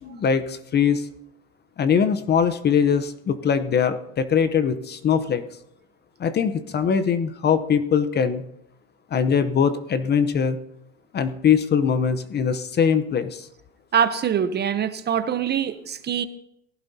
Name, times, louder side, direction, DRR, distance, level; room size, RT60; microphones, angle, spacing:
voice 1, 0.0-1.1 1.8-5.4 6.2-8.4 9.1-10.6 11.1-13.5, left 7 dB, 25° left, 12 dB, 0.8 m, -22 dB
voice 2, 13.9-16.3, right 8 dB, 25° right, 12 dB, 0.7 m, -23 dB
18.5 x 15.5 x 2.8 m, 0.78 s
supercardioid pair, 110°, 38 cm